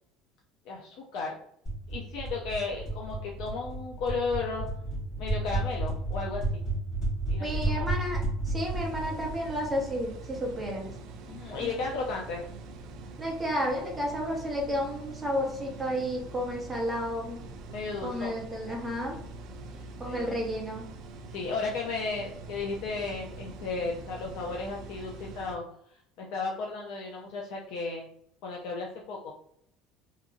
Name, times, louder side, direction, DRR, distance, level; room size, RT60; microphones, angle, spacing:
voice 1, 0.7-1.4 1.9-4.7 5.2-6.4 7.3-7.5 7.8-7.9 11.3-12.5 17.7-18.4 19.7-20.3 21.3-25.6 26.2-28.1 28.4-29.3, left 4 dB, 55° left, -1 dB, 0.4 m, -34 dB
sound 1, 1.6-10.3, right 2 dB, 35° left, 1.3 m, -32 dB
voice 2, 7.4-10.9 11.6-11.8 13.2-17.4 18.0-19.2 20.0-20.9, equal, 10° right, -1 dB, 0.6 m, -32 dB
sound 2, 8.6-25.6, right 3 dB, 50° right, 0.3 m, -44 dB
2.8 x 2.5 x 2.4 m, 0.71 s
cardioid pair, 180°, 0 cm